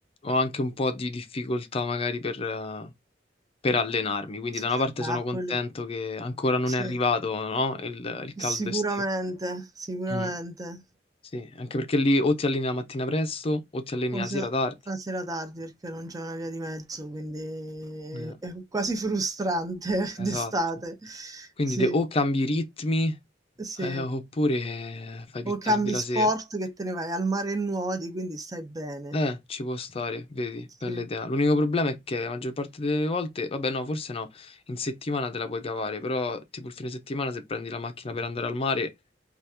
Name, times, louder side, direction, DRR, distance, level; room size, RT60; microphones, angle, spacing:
voice 1, 0.2-2.9 3.6-8.8 10.1-10.3 11.3-14.7 18.1-18.4 20.2-20.5 21.6-23.2 23.8-26.3 29.1-38.9, left 2 dB, 30° left, 0.5 m, -28 dB
voice 2, 5.0-5.6 6.8-7.0 8.4-10.8 14.1-14.5 14.9-22.0 23.6-24.1 25.4-29.2 30.9-31.1, right 1 dB, 20° right, 0.5 m, -30 dB
2.8 x 2.4 x 3.3 m
head